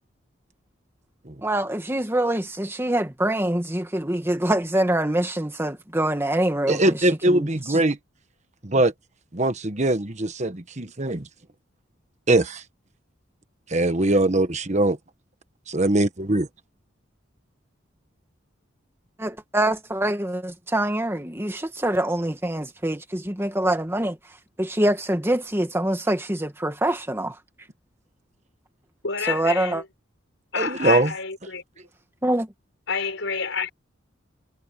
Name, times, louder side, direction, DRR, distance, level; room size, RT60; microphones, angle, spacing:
voice 1, 1.4-6.9 7.3-7.5 19.2-24.2 24.6-27.4 29.3-29.8 32.2-32.5, right 1 dB, 10° right, 1.8 m, -25 dB
voice 2, 6.7-8.0 8.6-8.9 9.3-11.3 12.3-12.6 13.7-15.0 15.7-16.5 30.5-31.1, right 2 dB, 35° right, 1.3 m, -22 dB
voice 3, 29.0-29.8 30.5-31.6 32.9-33.7, left 5 dB, 75° left, 5.1 m, -28 dB
head